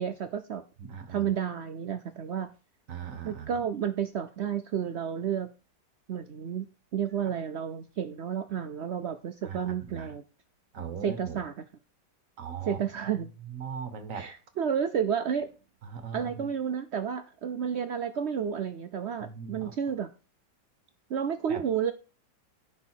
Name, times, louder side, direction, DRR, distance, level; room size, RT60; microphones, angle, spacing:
voice 1, 0.0-0.6 1.1-2.5 3.2-5.5 6.1-10.2 11.0-11.6 12.6-13.3 14.1-15.5 16.1-20.1 21.1-21.9, right 8 dB, 80° right, 0.6 m, -31 dB
voice 2, 0.8-1.2 2.9-3.5 9.5-9.6 9.9-10.1 10.7-11.3 12.4-12.8 13.6-14.3 15.9-16.5 19.4-19.7 21.5-21.6, right 6 dB, 50° right, 1.4 m, -38 dB
10.0 x 4.8 x 4.5 m
omnidirectional pair, 1.9 m